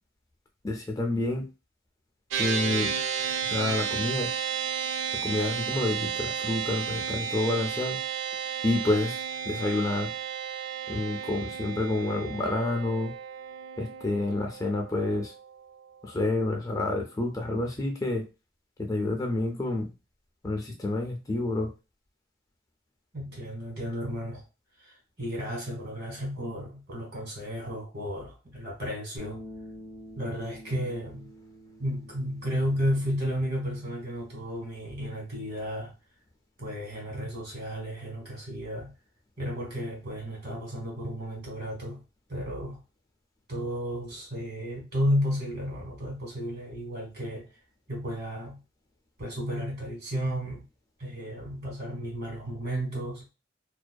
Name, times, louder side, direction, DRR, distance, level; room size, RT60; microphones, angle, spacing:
voice 1, 0.6-1.5 2.3-2.9 3.5-4.3 5.2-8.0 8.6-10.1 10.9-13.1 13.8-15.3 16.0-18.2 18.8-19.9 20.4-21.7, left 2 dB, 20° left, 0.3 m, -29 dB
sound 1, 2.3-15.8, right 7 dB, 75° right, 0.3 m, -33 dB
voice 2, 23.1-24.4 24.8-29.4 30.2-31.3 31.8-35.9 36.6-38.9 39.4-42.0 42.3-42.8 43.5-47.5 47.9-48.6 49.2-50.6 51.0-53.3, equal, 55° right, 1.3 m, -33 dB
sound 2, 29.2-35.4, equal, 90° right, 0.9 m, -48 dB
2.5 x 2.2 x 2.2 m
head